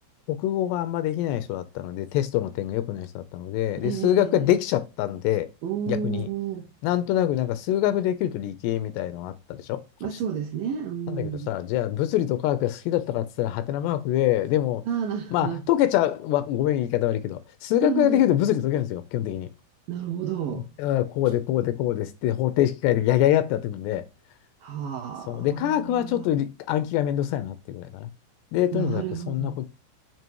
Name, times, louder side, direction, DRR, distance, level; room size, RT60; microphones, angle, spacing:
voice 1, 0.3-5.5 5.9-6.3 6.8-9.8 11.1-14.8 15.3-19.5 20.5-24.0 25.3-28.1 28.5-29.7, left 12 dB, 80° left, 2.5 m, -25 dB
voice 2, 3.8-4.5 5.6-6.7 10.0-11.5 14.9-15.6 17.8-18.2 19.9-20.7 24.6-26.3 28.7-29.6, right 8 dB, 85° right, 2.0 m, -31 dB
7.5 x 2.8 x 4.5 m
omnidirectional pair, 5.1 m